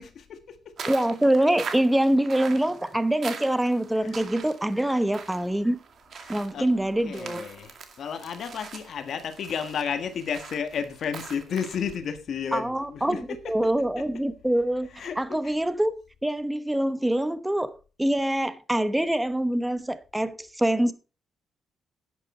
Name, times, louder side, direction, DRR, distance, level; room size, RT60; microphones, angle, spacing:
voice 1, 0.0-0.9 1.3-1.4 3.9-4.2 4.8-5.0 6.1-6.7 7.0-14.0 14.5-15.5, left 7 dB, 60° left, 1.5 m, -33 dB
sound 1, 0.8-12.0, right 6 dB, 55° right, 2.1 m, -42 dB
voice 2, 0.9-5.8 6.3-7.4 12.5-13.2 13.5-14.9 15.2-20.9, right 1 dB, 5° right, 0.9 m, -25 dB
11.0 x 9.6 x 4.3 m
cardioid pair, 105°, 0 cm